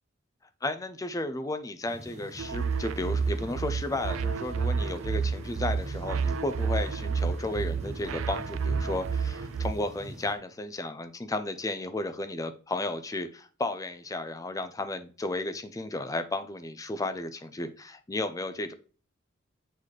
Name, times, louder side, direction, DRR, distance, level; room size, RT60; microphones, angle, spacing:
voice 1, 0.6-18.7, left 2 dB, 15° left, 0.4 m, -33 dB
sound 1, 1.9-10.3, right 1 dB, 35° right, 1.0 m, -43 dB
sound 2, 2.4-9.7, right 5 dB, 75° right, 0.4 m, -30 dB
7.4 x 4.0 x 3.2 m
head